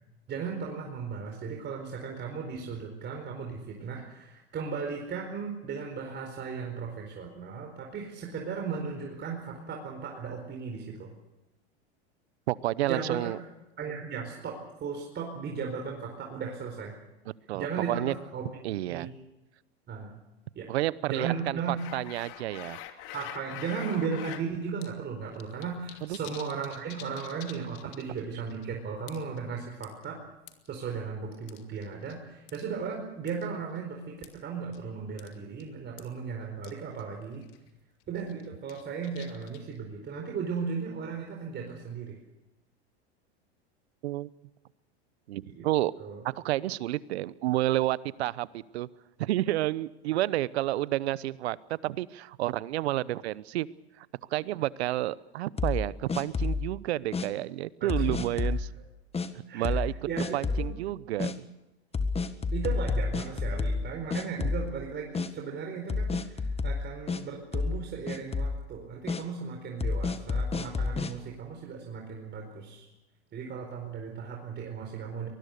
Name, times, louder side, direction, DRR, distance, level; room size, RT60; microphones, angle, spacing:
voice 1, 0.3-11.1 12.8-13.3 13.8-17.0 17.5-19.1 19.9-20.1 20.5-20.7 21.1-21.8 23.1-30.2 30.7-37.4 38.1-42.2 45.4-45.7 46.0-46.2 57.8-58.5 59.5-60.8 62.5-72.9 73.3-75.3, right 5 dB, 30° right, 1 dB, 4.6 m, -36 dB
voice 2, 12.5-13.4 17.5-18.1 18.6-19.1 20.7-22.8 26.1-26.2 44.0-44.3 45.3-45.9 46.2-48.9 49.2-53.7 54.0-54.1 54.3-58.7 59.5-59.9 60.3-61.4 64.4-64.5, right 15 dB, 75° right, 20 dB, 0.9 m, -30 dB
sound 1, 21.8-24.4 24.8-24.9 25.2-28.2 28.5-28.6 29.1-29.4 29.8-30.7 31.5-32.1 32.5-32.6 33.3-33.5 34.2-34.4 34.7-34.9 35.2-35.3 35.6-35.7 36.0-36.1 36.6-36.7 37.0-37.1 37.4-37.7 38.1-39.8, left 12 dB, 55° left, 2.8 m, -45 dB
sound 2, 55.6-56.7 57.1-57.3 57.9-58.6 59.1-59.3 59.6-59.9 60.2-60.7 61.2-61.3 61.9-64.8 65.1-65.3 65.9-67.2 67.5-67.8 68.1-68.6 69.1-69.2 69.8-71.1, left 4 dB, 20° left, 1.7 m, -29 dB
23.5 x 20.5 x 6.7 m, 1.0 s
hypercardioid pair, 100°, 33 cm